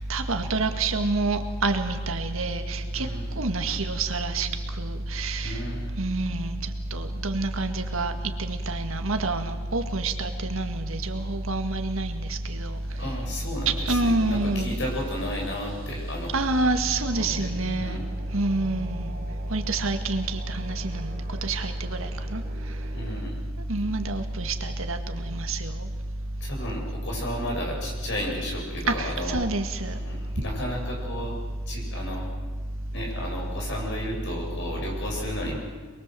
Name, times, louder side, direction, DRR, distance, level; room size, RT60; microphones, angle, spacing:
voice 1, 0.1-3.1 3.4-4.5 4.8-5.6 6.0-8.1 8.4-12.8 13.7-14.8 16.3-18.0 18.3-19.1 19.5-22.4 23.7-25.9 28.9-30.0, right 2 dB, 70° right, 6 dB, 2.0 m, -27 dB
voice 2, 2.9-3.3 5.4-6.0 12.9-16.4 17.1-17.5 17.8-18.0 22.9-23.4 26.4-29.4 29.9-31.4 31.7-32.3 32.9-35.6, equal, 55° left, -1 dB, 7.3 m, -33 dB
sound 1, 12.7-23.2, right 1 dB, 45° right, 3.3 m, -46 dB
24.0 x 22.5 x 7.8 m, 1.5 s
head